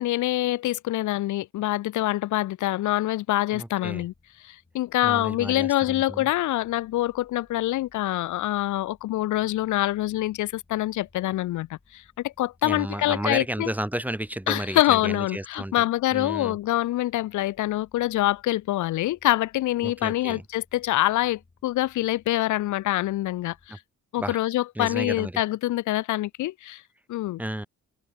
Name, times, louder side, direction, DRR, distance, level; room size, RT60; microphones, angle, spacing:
voice 1, 0.0-4.1 4.4-13.7 14.5-23.8 24.1-26.8 27.1-27.4, left 15 dB, 75° left, 0.7 m, -25 dB
voice 2, 3.5-4.0 5.0-6.3 12.6-15.8 16.1-16.6 19.8-20.4 23.7-23.8 24.2-24.4 24.8-25.3 27.4-27.7, right 1 dB, 5° right, 0.8 m, -32 dB
sound 1, 3.8-23.7, left 3 dB, 20° left, 5.3 m, -62 dB
cardioid pair, 90°, 30 cm